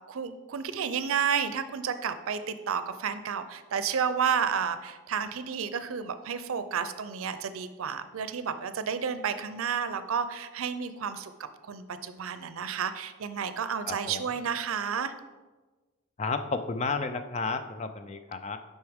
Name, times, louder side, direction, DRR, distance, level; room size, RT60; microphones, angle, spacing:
voice 1, 0.1-11.3 11.6-15.1, right 7 dB, 75° right, 11 dB, 0.5 m, -31 dB
voice 2, 13.9-14.2 16.2-18.6, left 4 dB, 30° left, 8 dB, 0.4 m, -32 dB
7.8 x 5.4 x 3.5 m, 1.2 s
head